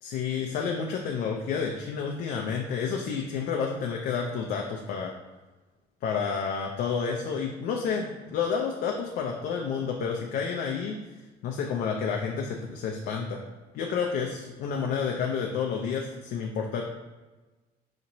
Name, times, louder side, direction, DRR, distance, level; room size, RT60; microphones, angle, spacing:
voice 1, 0.0-5.1 6.0-11.0 11.4-13.4 13.7-16.8, left 6 dB, 65° left, 1 dB, 0.4 m, -30 dB
4.2 x 2.9 x 2.6 m, 1.2 s
cardioid pair, 110°, 17 cm